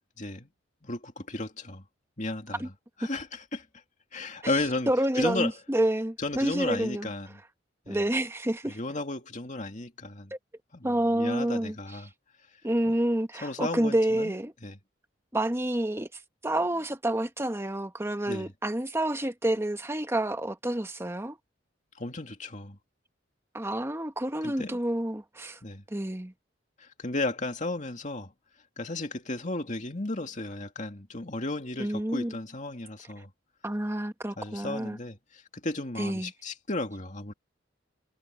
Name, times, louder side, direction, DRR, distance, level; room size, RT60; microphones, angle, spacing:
voice 1, 0.2-0.5 0.8-1.8 2.2-2.7 3.0-3.7 4.1-4.9 5.2-5.5 6.2-7.4 7.9-8.0 8.6-10.3 10.7-12.1 12.9-13.0 13.4-14.3 14.6-14.8 18.3-18.5 21.9-22.8 24.4-24.8 25.6-25.8 26.8-28.3 28.8-33.3 34.4-37.3, left 2 dB, 40° left, 2.5 m, -34 dB
voice 2, 4.9-7.1 7.9-8.8 10.8-11.8 12.6-14.5 15.3-16.1 16.4-21.4 23.5-25.6 25.9-26.3 31.8-32.3 33.6-35.0 36.0-36.3, right 1 dB, 15° right, 1.1 m, -28 dB
head